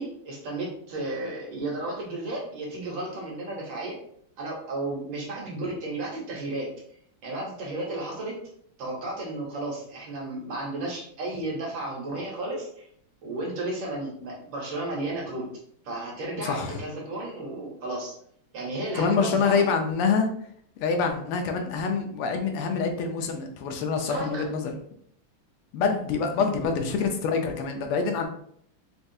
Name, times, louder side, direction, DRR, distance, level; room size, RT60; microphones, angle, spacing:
voice 1, 0.0-4.0 4.4-6.7 7.2-8.3 8.8-12.9 13.2-15.4 15.8-18.1 18.5-19.7 24.0-24.5 26.3-26.5, right 2 dB, 65° right, -2 dB, 1.6 m, -33 dB
voice 2, 16.4-16.8 18.9-20.3 20.8-24.7 25.7-28.3, left 5 dB, 85° left, 4 dB, 1.5 m, -26 dB
4.3 x 2.3 x 2.6 m, 0.66 s
omnidirectional pair, 2.4 m